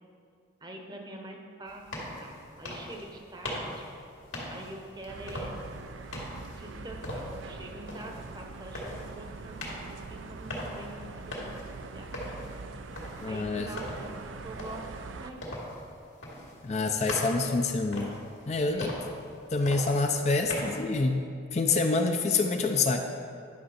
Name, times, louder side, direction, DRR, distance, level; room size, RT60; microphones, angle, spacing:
voice 1, 0.6-3.8 4.5-5.5 6.6-11.6 11.9-12.5 13.3-14.9 15.2-15.6 18.7-19.2, right 1 dB, 20° right, 2 dB, 0.8 m, -45 dB
sound 1, 1.7-20.9, left 1 dB, 80° left, 2.2 m, -41 dB
sound 2, 5.1-15.3, right 4 dB, 85° right, 0.5 m, -43 dB
voice 2, 13.2-13.7 16.6-18.2 18.5-18.9 19.5-23.0, left 3 dB, 35° left, 4 dB, 0.4 m, -27 dB
10.5 x 6.3 x 4.2 m, 2.3 s
head